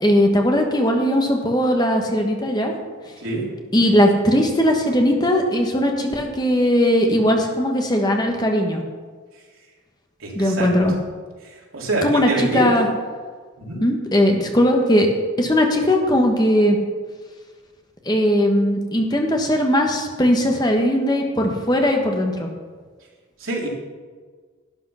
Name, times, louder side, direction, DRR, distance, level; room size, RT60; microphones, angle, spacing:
voice 1, 0.0-2.7 3.7-8.8 10.3-10.9 12.0-12.9 13.8-15.1 15.4-16.8 18.0-22.5, equal, 20° left, 2 dB, 1.3 m, -19 dB
voice 2, 10.2-10.7 11.4-12.9 13.6-13.8 23.4-23.7, right 2 dB, 80° right, -3 dB, 3.6 m, -26 dB
12.0 x 10.5 x 5.7 m, 1.5 s
head